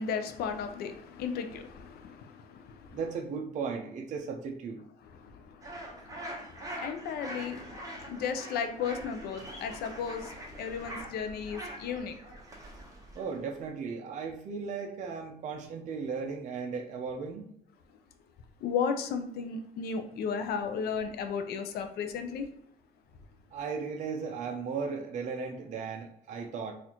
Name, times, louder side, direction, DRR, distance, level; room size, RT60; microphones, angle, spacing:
voice 1, 0.0-3.0 5.1-12.2 18.6-22.5, left 6 dB, 70° left, 7 dB, 0.5 m, -35 dB
voice 2, 2.9-4.8 13.1-17.4 23.5-26.7, right 5 dB, 45° right, 2 dB, 0.5 m, -36 dB
sound 1, 5.6-13.7, right 1 dB, 20° right, 0.9 m, -44 dB
4.1 x 2.5 x 2.8 m, 0.71 s
cardioid pair, 125°, 17 cm